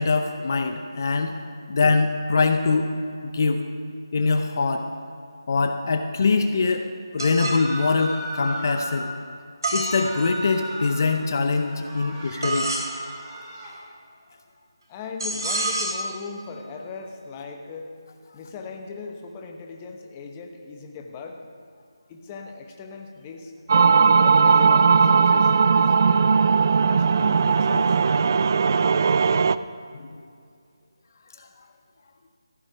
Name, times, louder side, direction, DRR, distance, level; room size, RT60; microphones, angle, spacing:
voice 1, 0.0-1.3 1.7-2.9 3.2-3.6 4.1-4.9 5.5-6.9 7.1-9.1 9.7-12.7 29.9-30.2 31.4-31.5, left 4 dB, 45° left, 6 dB, 0.7 m, -23 dB
sound 1, 7.2-7.6 9.6-10.6 12.4-12.9 15.2-16.1, right 2 dB, 65° right, 2.8 m, -28 dB
sound 2, 7.3-9.0 9.7-11.1 11.5-13.8, right 1 dB, 20° right, 2.5 m, -36 dB
voice 2, 14.9-17.9 18.3-21.4 22.1-23.5 24.2-26.5 26.9-28.0, left 4 dB, 20° left, 3 dB, 0.9 m, -38 dB
sound 3, 23.7-29.6, right 5 dB, 45° right, 0.3 m, -18 dB
14.5 x 8.9 x 5.8 m, 2.4 s
figure-of-eight pair, 160°, 2 cm